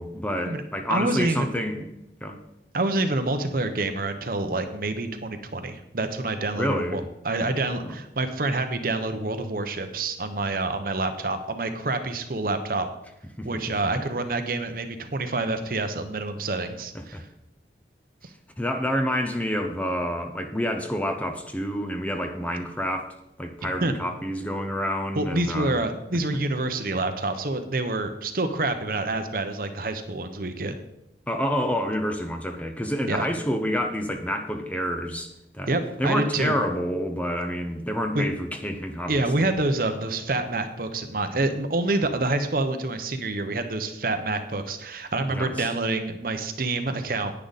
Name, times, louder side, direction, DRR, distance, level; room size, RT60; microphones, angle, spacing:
voice 1, 0.0-1.9 2.2-2.4 6.6-7.1 7.8-8.0 13.4-13.7 16.9-17.2 18.6-25.8 31.3-35.7 36.0-39.5 45.3-45.7, equal, 10° left, 6 dB, 0.7 m, -28 dB
voice 2, 0.9-1.6 2.7-12.9 13.4-17.2 23.8-23.9 25.2-30.7 33.1-33.3 35.7-36.5 38.1-38.2 39.1-47.3, right 2 dB, 50° right, 8 dB, 0.9 m, -27 dB
10.0 x 9.6 x 4.1 m, 0.86 s
head